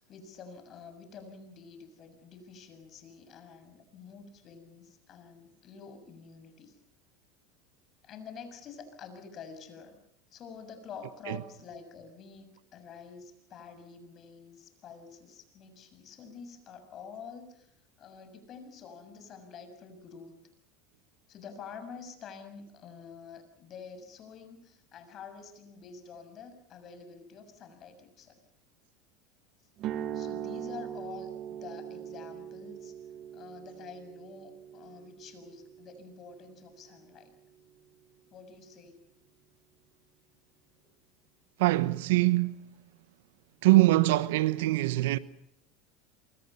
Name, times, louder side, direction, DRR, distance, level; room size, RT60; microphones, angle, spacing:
voice 1, 0.0-6.8 8.0-10.0 10.3-17.7 18.0-20.3 21.3-28.4 30.1-33.0 33.3-37.3 38.3-39.0, left 6 dB, 45° left, 6.9 m, -48 dB
sound 1, 29.8-37.8, right 10 dB, 50° right, 2.0 m, -41 dB
voice 2, 41.6-42.6 43.6-45.2, right 18 dB, 75° right, 1.1 m, -23 dB
28.0 x 24.5 x 5.7 m
hypercardioid pair, 95°, 0 cm